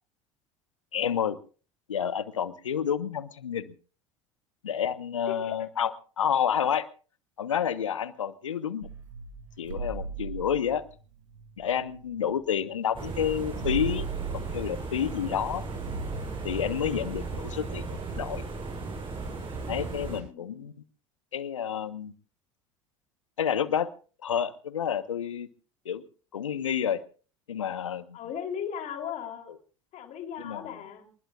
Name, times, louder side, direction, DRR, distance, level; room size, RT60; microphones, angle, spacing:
voice 1, 0.9-1.4 1.9-3.7 4.6-6.9 7.4-8.9 9.6-10.8 11.6-14.1 14.3-15.6 16.4-18.4 19.7-20.7 21.3-22.1 23.4-23.9 24.2-25.5 25.8-26.0 26.3-27.0 27.5-28.0 30.4-30.7, left 8 dB, 85° left, 15 dB, 1.1 m, -29 dB
sound 1, 8.8-12.7 13.0-13.1 13.3-18.5, right 5 dB, 80° right, 1.8 m, -39 dB
sound 2, 12.9-20.2, right 3 dB, 35° right, 7.5 m, -36 dB
voice 2, 20.2-20.7 28.1-29.6 29.9-31.1, left 8 dB, 50° left, 4 dB, 3.5 m, -37 dB
28.0 x 20.5 x 2.5 m, 0.39 s
hypercardioid pair, 70°, 16 cm